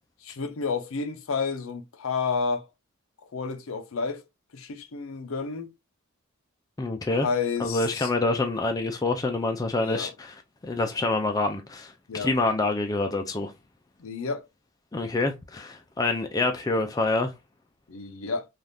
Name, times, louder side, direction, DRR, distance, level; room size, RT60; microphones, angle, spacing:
voice 1, 0.2-2.7 3.3-4.2 4.5-5.7 7.1-8.1 9.8-10.1 12.1-12.3 14.0-14.5 17.9-18.5, left 5 dB, 70° left, 0.5 m, -30 dB
voice 2, 6.8-7.3 7.6-10.3 10.6-11.9 12.2-13.5 14.9-17.3, left 2 dB, 15° left, 0.3 m, -26 dB
3.3 x 2.4 x 2.6 m
head